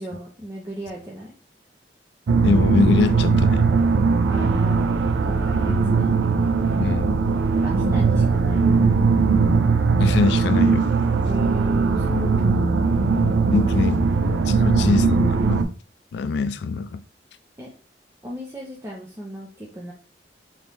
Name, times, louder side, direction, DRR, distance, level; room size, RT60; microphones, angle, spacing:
voice 1, 0.0-1.3 4.3-4.9 5.2-6.1 7.6-8.8 11.3-13.0 13.8-14.1 14.5-15.0 17.6-17.7 18.2-19.9, equal, 15° right, 0.6 m, -35 dB
sound 1, 2.3-15.6, right 4 dB, 80° right, 0.4 m, -19 dB
voice 2, 2.4-3.7 5.7-5.8 6.8-7.2 10.0-10.9 13.2-14.0 14.5-15.6 16.1-17.0, left 4 dB, 70° left, 0.3 m, -23 dB
3.5 x 2.8 x 3.0 m
head